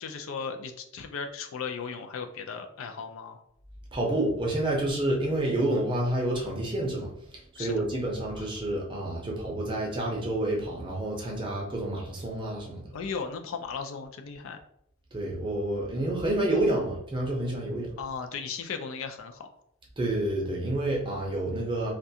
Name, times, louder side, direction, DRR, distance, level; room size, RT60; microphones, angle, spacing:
voice 1, 0.0-3.4 7.6-7.8 8.4-8.5 12.9-14.6 18.0-19.5, left 5 dB, 70° left, 6 dB, 0.4 m, -36 dB
voice 2, 3.9-7.1 7.5-12.8 15.1-17.9 20.0-21.9, right 1 dB, 25° right, -2 dB, 0.6 m, -29 dB
2.4 x 2.2 x 2.7 m, 0.73 s
head